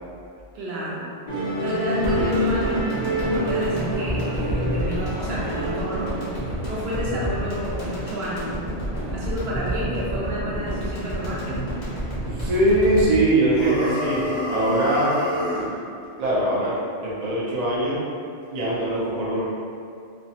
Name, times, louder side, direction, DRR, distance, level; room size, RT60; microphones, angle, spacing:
voice 1, 0.5-1.1 1.6-6.2 6.5-8.5 9.1-11.6, equal, 65° right, -7 dB, 0.9 m, -30 dB
Musical instrument, 1.3-7.9, equal, 35° left, 0.5 m, -27 dB
sound 1, 2.0-14.4 14.7-14.8, right 1 dB, 55° left, 0.9 m, -30 dB
voice 2, 12.3-15.1 15.5-15.7 16.2-16.8 17.0-18.0 18.5-19.4, right 1 dB, 45° right, -7 dB, 0.6 m, -22 dB
sound 2, 13.5-15.7, left 1 dB, 85° left, 0.9 m, -28 dB
3.0 x 2.0 x 2.7 m, 2.4 s
omnidirectional pair, 1.2 m